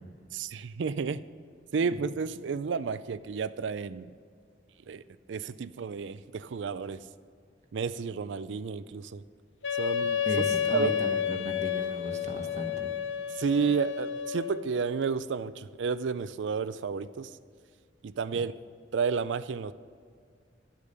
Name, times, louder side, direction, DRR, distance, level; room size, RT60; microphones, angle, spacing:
voice 1, 0.3-1.2 1.7-4.1 4.9-5.0 5.3-7.0 7.7-9.2 9.7-10.2 10.7-10.9 13.4-17.4 18.0-18.5 18.9-19.7, right 5 dB, 80° right, 14 dB, 0.4 m, -31 dB
Wind instrument woodwind instrument, 9.6-14.7, left 9 dB, 85° left, 0.7 m, -31 dB
voice 2, 10.2-12.9, equal, 40° right, 3 dB, 1.1 m, -36 dB
11.5 x 8.5 x 6.7 m, 2.1 s
head